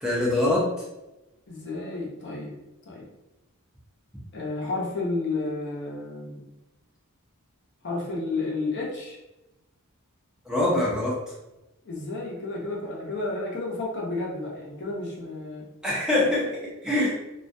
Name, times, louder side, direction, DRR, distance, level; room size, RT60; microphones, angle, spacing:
voice 1, 0.0-0.7 10.5-11.2 15.8-17.1, left 1 dB, 5° right, -5 dB, 0.4 m, -24 dB
voice 2, 1.5-2.5 2.9-3.1 4.3-6.5 7.8-9.2 11.8-15.6, left 2 dB, 50° left, -3 dB, 0.6 m, -31 dB
2.4 x 2.1 x 2.5 m, 0.96 s
head